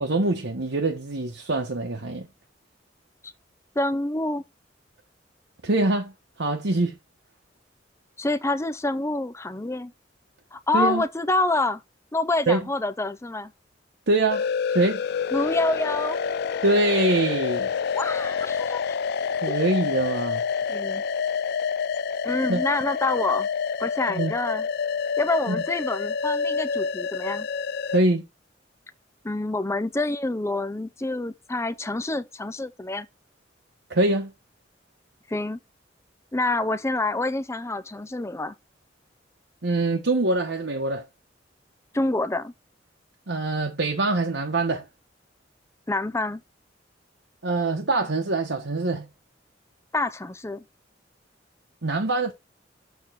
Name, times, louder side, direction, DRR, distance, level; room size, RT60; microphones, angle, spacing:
voice 1, 0.0-2.3 5.6-6.1 6.4-6.9 10.7-11.0 12.5-12.7 14.1-15.0 16.6-17.7 19.3-20.4 22.5-22.6 24.1-24.3 25.5-25.6 27.9-28.2 33.9-34.3 39.6-41.0 43.3-44.9 47.4-49.1 51.8-52.3, right 2 dB, 70° right, 1.1 m, -24 dB
voice 2, 3.8-4.4 8.2-9.9 10.5-11.8 12.1-13.5 15.3-16.2 17.9-18.8 19.5-19.6 20.7-21.0 22.2-23.5 23.8-24.7 25.2-27.5 29.2-33.1 35.3-35.6 36.3-38.6 41.9-42.5 45.9-46.4 49.9-50.6, left 2 dB, 15° left, 0.6 m, -27 dB
sound 1, 14.3-28.0, left 6 dB, 60° left, 0.4 m, -28 dB
7.1 x 3.6 x 5.7 m
head